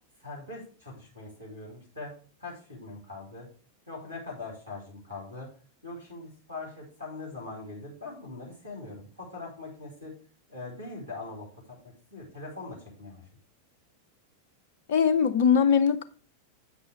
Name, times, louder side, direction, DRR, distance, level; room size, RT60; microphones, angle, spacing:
voice 1, 0.2-2.1 2.4-3.5 3.9-5.5 5.8-10.1 10.5-13.2, left 3 dB, 90° right, 3.3 m, -42 dB
voice 2, 14.9-16.0, left 7 dB, 55° left, 0.4 m, -21 dB
8.3 x 6.1 x 3.3 m
figure-of-eight pair, 90°, 0 cm